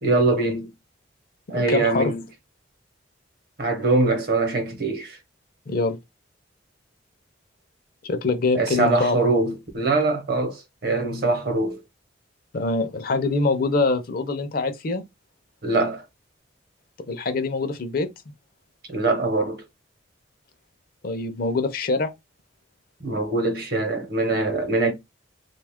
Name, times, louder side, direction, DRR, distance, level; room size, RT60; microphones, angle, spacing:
voice 1, 0.0-0.7 1.5-2.2 3.6-5.2 8.5-11.8 15.6-16.0 18.9-19.6 23.0-24.9, right 3 dB, 50° right, 0.8 m, -23 dB
voice 2, 1.5-2.1 5.7-6.0 8.0-9.2 12.5-15.0 17.1-18.1 21.0-22.1, left 3 dB, 50° left, 0.5 m, -24 dB
2.8 x 2.3 x 3.5 m
head